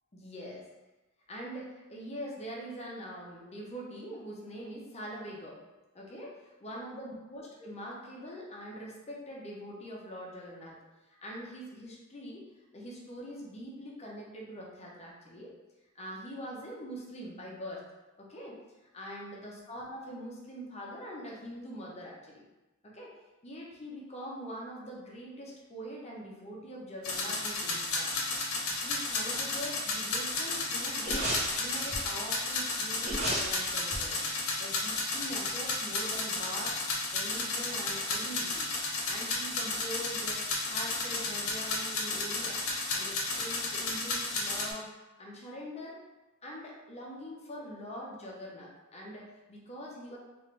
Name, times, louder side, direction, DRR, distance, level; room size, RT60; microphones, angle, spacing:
voice 1, 0.1-0.7 1.3-5.6 5.9-10.8 11.2-12.4 12.7-15.5 15.9-17.8 18.2-22.5 22.8-23.1 23.4-28.1 28.6-31.3 31.6-34.2 34.6-36.8 37.1-38.7 39.0-42.6 42.9-44.9 45.2-46.0 46.4-50.2, equal, 30° left, -3 dB, 0.6 m, -43 dB
sound 1, 27.0-44.7, left 3 dB, 75° left, 0.7 m, -33 dB
sound 2, 31.0-32.2 33.0-35.5 35.8-35.9, right 1 dB, 30° right, 0.7 m, -35 dB
3.2 x 2.4 x 3.1 m, 1.1 s
head